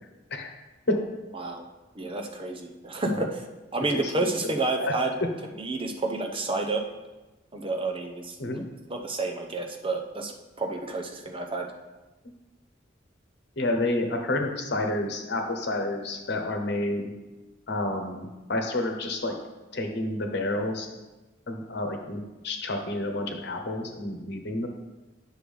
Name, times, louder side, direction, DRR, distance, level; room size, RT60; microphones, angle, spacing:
voice 1, 2.0-3.4 3.7-5.1 5.6-6.8 7.5-8.6 8.9-11.7, right 2 dB, 30° right, 3 dB, 0.7 m, -30 dB
voice 2, 4.4-4.9 8.4-8.6 13.6-17.1 17.7-19.3 19.7-20.9 21.5-24.7, left 2 dB, 65° left, 4 dB, 1.1 m, -29 dB
9.6 x 6.2 x 3.4 m, 1.1 s
head